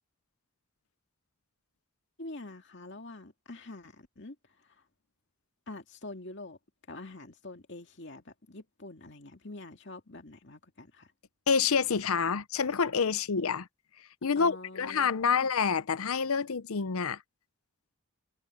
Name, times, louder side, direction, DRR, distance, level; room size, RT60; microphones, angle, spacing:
voice 1, 2.2-4.4 5.7-6.6 6.9-11.1 14.4-15.5, left 2 dB, 55° left, 2.3 m, -45 dB
voice 2, 11.5-13.7 14.2-17.2, left 6 dB, 75° left, 0.7 m, -27 dB
head